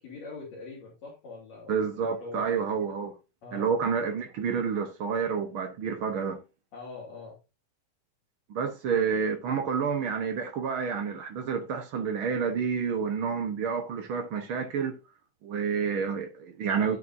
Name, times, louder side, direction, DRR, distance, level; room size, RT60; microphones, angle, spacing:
voice 1, 0.0-2.5 3.4-3.7 6.7-7.4 16.7-17.0, left 3 dB, 55° left, 3.6 m, -43 dB
voice 2, 1.7-3.1 3.5-6.4 8.5-15.0 15.4-17.0, right 6 dB, 75° right, 1.2 m, -29 dB
12.0 x 7.6 x 2.6 m
omnidirectional pair, 3.9 m